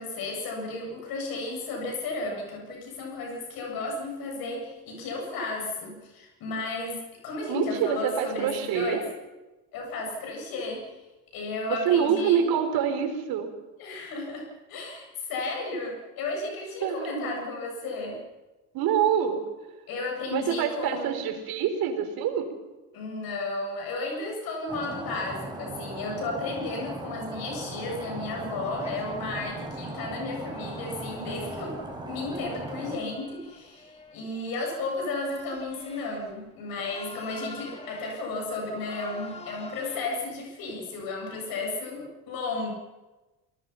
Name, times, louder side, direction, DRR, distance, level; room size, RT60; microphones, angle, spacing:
voice 1, 0.0-9.0 9.7-11.0 11.3-12.4 13.8-18.2 19.9-21.2 22.9-42.7, left 2 dB, 70° left, 1 dB, 7.9 m, -33 dB
voice 2, 7.5-9.0 11.7-13.5 16.8-17.3 18.7-19.4 20.3-22.5, right 8 dB, 70° right, 6 dB, 4.3 m, -26 dB
Stream, 24.7-33.0, right 1 dB, 10° right, 5.4 m, -38 dB
sound 1, 28.6-40.0, left 2 dB, 15° left, 3.0 m, -47 dB
28.0 x 19.5 x 5.9 m, 1.1 s
cardioid pair, 115°, 37 cm